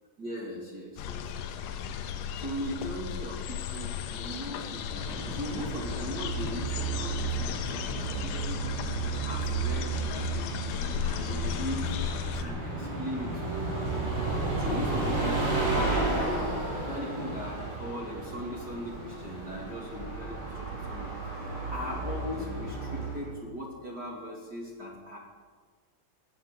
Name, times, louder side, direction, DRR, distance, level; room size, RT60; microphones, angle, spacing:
voice 1, 0.2-2.0 2.4-8.8 9.2-10.5 11.1-11.9 12.3-13.7 14.4-21.1 21.4-25.2, equal, 30° right, -3 dB, 1.9 m, -39 dB
sound 1, 1.0-12.5, left 8 dB, 80° left, 3.3 m, -35 dB
Bus, 4.8-23.3, right 3 dB, 85° right, 8.5 m, -33 dB
17.0 x 10.0 x 8.2 m, 1.5 s
omnidirectional pair, 5.6 m